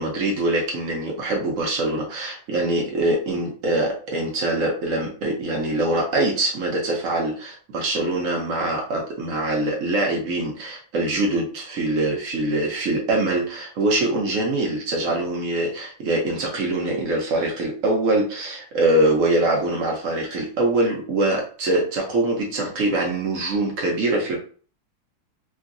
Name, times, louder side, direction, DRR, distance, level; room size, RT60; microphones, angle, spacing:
voice 1, 0.0-24.4, right 2 dB, 55° right, -1 dB, 0.9 m, -23 dB
3.7 x 2.1 x 2.5 m, 0.41 s
omnidirectional pair, 2.2 m